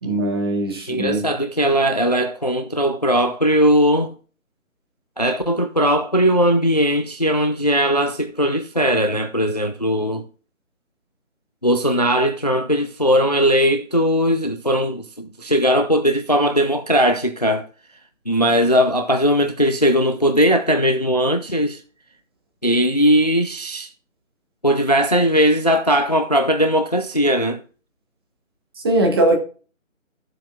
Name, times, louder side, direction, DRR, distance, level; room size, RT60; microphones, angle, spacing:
voice 1, 0.0-1.2 28.8-29.4, right 1 dB, 20° right, 1.3 m, -20 dB
voice 2, 0.9-4.1 5.2-10.3 11.6-17.7 18.3-21.8 22.6-23.9 24.6-27.6, equal, 30° left, 0.5 m, -19 dB
14.5 x 7.5 x 2.4 m
figure-of-eight pair, 160°, 40 cm